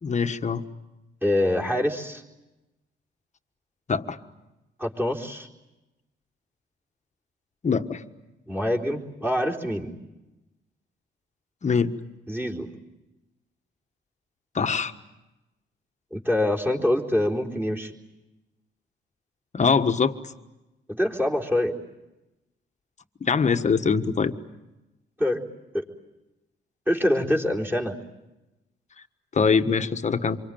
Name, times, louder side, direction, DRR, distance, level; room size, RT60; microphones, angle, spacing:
voice 1, 0.0-0.6 3.9-4.2 7.6-8.0 11.6-11.9 14.5-14.9 19.5-20.1 23.2-24.3 29.3-30.4, left 5 dB, 35° left, 9 dB, 1.5 m, -23 dB
voice 2, 1.2-2.2 4.8-5.5 8.5-10.0 12.3-12.7 16.1-17.9 21.0-21.8 25.2-25.4 25.7-25.8 26.9-28.0, left 1 dB, 10° right, 0 dB, 3.9 m, -25 dB
27.0 x 24.0 x 9.0 m, 1.0 s
cardioid pair, 90°, 20 cm